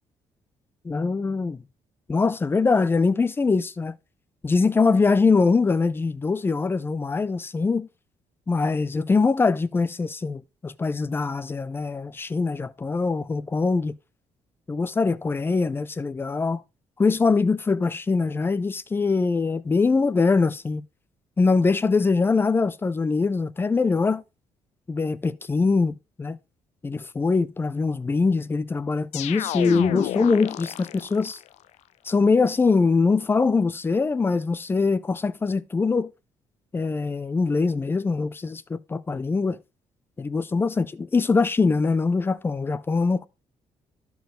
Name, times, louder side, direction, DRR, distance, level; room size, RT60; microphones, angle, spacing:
voice 1, 0.8-1.6 2.1-3.9 4.4-7.9 8.5-13.9 14.7-16.6 17.0-20.8 21.4-24.2 24.9-26.4 26.8-31.4 32.1-36.1 36.7-39.6 40.2-43.3, left 4 dB, 20° left, 0.5 m, -23 dB
sound 1, 29.1-31.4, left 14 dB, 80° left, 0.4 m, -30 dB
12.5 x 4.7 x 3.8 m
cardioid pair, 125°, 11 cm